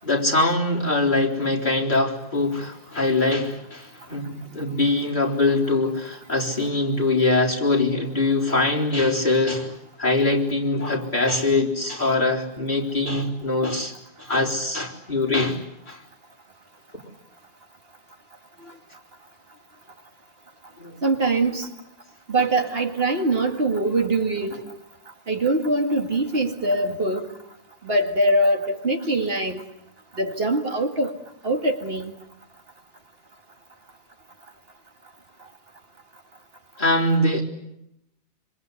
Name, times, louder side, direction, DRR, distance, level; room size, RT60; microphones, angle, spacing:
voice 1, 0.0-13.9 14.2-16.0 20.8-21.0 36.8-37.4, left 2 dB, 40° left, 4.4 m, -23 dB
voice 2, 21.0-21.7 22.3-24.6 25.3-27.3 27.8-29.6 30.2-31.1 31.4-32.1, right 2 dB, 55° right, 2.2 m, -23 dB
26.0 x 26.0 x 8.3 m
omnidirectional pair, 1.2 m